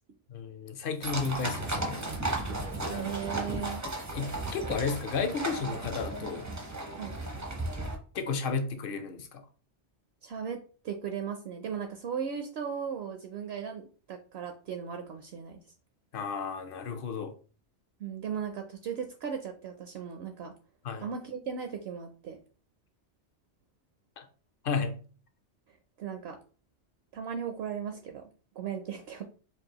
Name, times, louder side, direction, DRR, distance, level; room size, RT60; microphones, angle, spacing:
voice 1, 0.3-2.1 4.1-6.5 8.1-9.4 16.1-17.3 20.8-21.1 24.2-24.3 24.6-25.0, left 5 dB, 60° left, 0.7 m, -33 dB
sound 1, 1.0-8.0, right 2 dB, 25° right, 0.4 m, -35 dB
voice 2, 2.9-3.8 7.0-7.2 10.2-10.6 10.8-15.6 18.0-20.5 21.0-22.4 25.7-26.4 27.1-28.3 28.6-29.2, right 7 dB, 65° right, 0.7 m, -37 dB
4.5 x 2.6 x 2.9 m
omnidirectional pair, 1.2 m